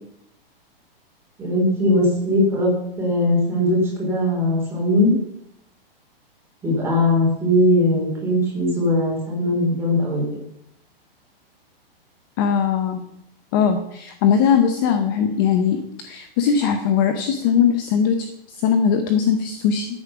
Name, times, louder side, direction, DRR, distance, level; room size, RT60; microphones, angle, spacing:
voice 1, 1.4-2.7 3.0-5.1 6.6-10.2, left 1 dB, 10° right, -3 dB, 3.7 m, -19 dB
voice 2, 12.4-13.0 13.5-19.9, left 7 dB, 25° left, 7 dB, 0.7 m, -20 dB
14.0 x 8.3 x 6.0 m, 0.76 s
hypercardioid pair, 170°, 30 cm